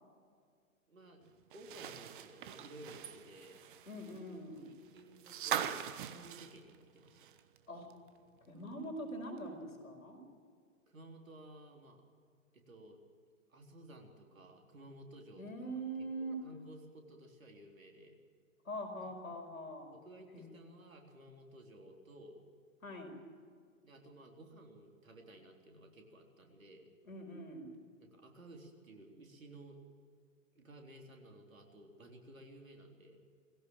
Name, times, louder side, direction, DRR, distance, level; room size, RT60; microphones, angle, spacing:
voice 1, 0.9-3.6 4.6-5.8 6.1-7.3 10.9-12.0 12.5-13.0 13.5-15.4 16.2-18.2 19.0-19.1 19.9-22.4 23.8-26.9 28.0-29.8 30.6-33.2, right 1 dB, 70° right, 2 dB, 3.8 m, -55 dB
sound 1, 1.5-7.6 7.9-8.0 9.4-9.5, right 10 dB, 35° right, 1.1 m, -42 dB
voice 2, 3.9-4.7 7.7-7.9 8.4-10.2 15.4-16.4 18.7-19.9 20.3-20.5 22.8-23.2 27.1-27.7, right 1 dB, 75° left, 4 dB, 5.2 m, -43 dB
20.0 x 16.5 x 7.7 m, 2.1 s
figure-of-eight pair, 125°, 42 cm